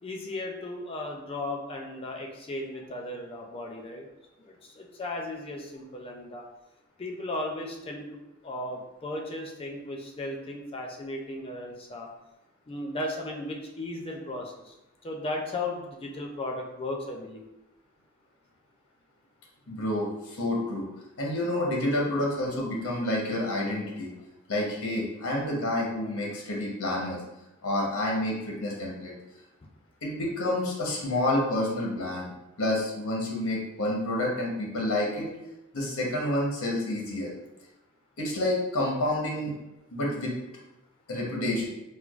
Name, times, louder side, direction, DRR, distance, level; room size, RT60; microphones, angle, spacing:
voice 1, 0.0-4.1 4.4-6.4 7.0-12.1 12.7-14.7 15.0-17.4, left 2 dB, 25° left, 0 dB, 0.4 m, -36 dB
voice 2, 19.7-20.9 21.2-24.1 24.5-27.2 27.6-29.1 30.0-32.3 32.6-35.3 35.7-37.3 38.2-39.5 39.9-40.3 41.1-41.7, left 1 dB, 90° left, -2 dB, 0.8 m, -29 dB
4.4 x 2.2 x 2.3 m, 0.95 s
head